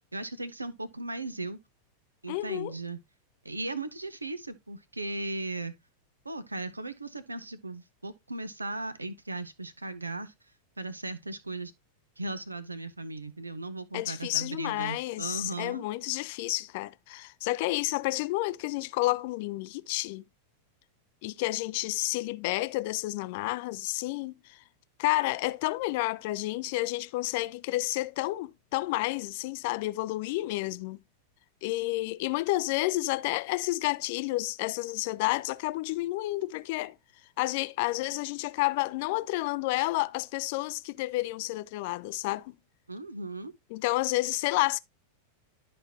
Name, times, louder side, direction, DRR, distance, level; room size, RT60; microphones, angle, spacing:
voice 1, 0.1-1.6 2.2-3.0 3.4-5.7 6.2-10.3 10.8-11.7 12.2-15.8 42.9-43.5, right 2 dB, 80° right, 0.8 m, -37 dB
voice 2, 2.3-2.7 13.9-20.2 21.2-24.6 25.0-31.0 31.6-36.9 37.4-42.5 43.7-44.8, left 19 dB, 50° left, 0.4 m, -30 dB
12.5 x 4.3 x 2.8 m
figure-of-eight pair, 90°, 0 cm